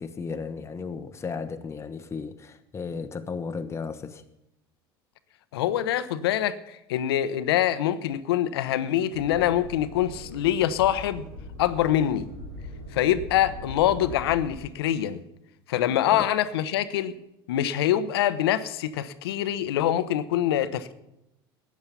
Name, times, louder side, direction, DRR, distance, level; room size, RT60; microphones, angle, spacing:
voice 1, 0.0-4.2 15.9-16.3, left 5 dB, 20° left, 1.0 m, -35 dB
voice 2, 5.5-11.3 11.6-12.3 12.9-15.2 15.7-17.1 17.5-20.9, left 11 dB, 75° left, 0.8 m, -25 dB
sound 1, 9.1-14.5, equal, 75° right, 5.3 m, -41 dB
13.5 x 9.5 x 7.0 m
hypercardioid pair, 80°, 13 cm